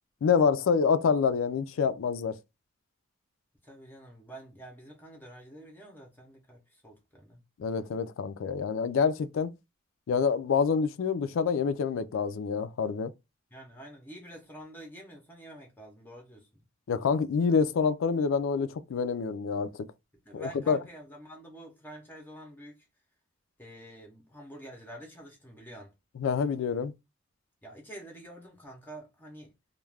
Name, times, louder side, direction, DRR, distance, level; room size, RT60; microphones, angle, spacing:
voice 1, 0.2-2.4 7.6-9.5 10.1-13.1 16.9-19.7 20.3-20.8 26.2-26.9, left 6 dB, 75° left, 0.4 m, -27 dB
voice 2, 3.6-7.4 13.5-16.5 20.2-22.9 23.6-25.9 27.6-29.5, right 1 dB, 10° left, 0.6 m, -47 dB
2.3 x 2.2 x 3.2 m
head